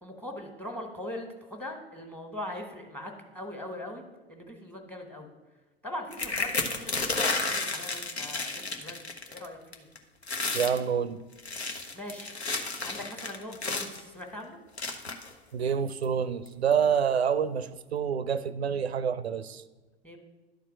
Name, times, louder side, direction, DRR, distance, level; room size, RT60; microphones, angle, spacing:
voice 1, 0.0-4.0 4.3-5.3 5.8-9.9 11.9-12.3 12.8-14.6 20.0-20.2, left 1 dB, 5° left, 4 dB, 1.5 m, -41 dB
sound 1, 6.1-9.5 9.7-10.0 10.2-10.8 11.3-14.0 14.8-15.3 16.0-16.1 16.5-16.7, left 3 dB, 90° left, 0.9 m, -32 dB
voice 2, 10.5-11.2 15.5-19.6, right 7 dB, 85° right, 15 dB, 0.5 m, -27 dB
11.0 x 4.5 x 6.0 m, 1.2 s
figure-of-eight pair, 85°, 31 cm